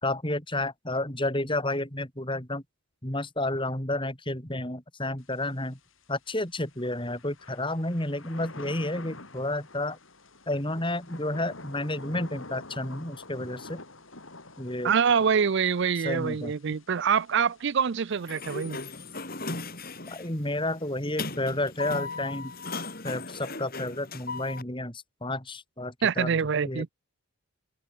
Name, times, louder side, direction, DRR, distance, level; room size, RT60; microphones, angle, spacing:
voice 1, 0.0-2.6 3.0-5.8 6.1-10.0 10.5-13.8 14.6-14.9 16.0-16.5 20.1-22.5 23.0-26.3 26.6-26.9, left 1 dB, 20° left, 3.4 m, -31 dB
Thunder / Rain, 5.2-23.4, left 2 dB, 65° left, 5.4 m, -49 dB
voice 2, 14.8-18.8 26.0-26.9, right 6 dB, 55° right, 0.4 m, -25 dB
Sliding door, 18.1-24.6, left 3 dB, 40° left, 5.6 m, -37 dB
open air
head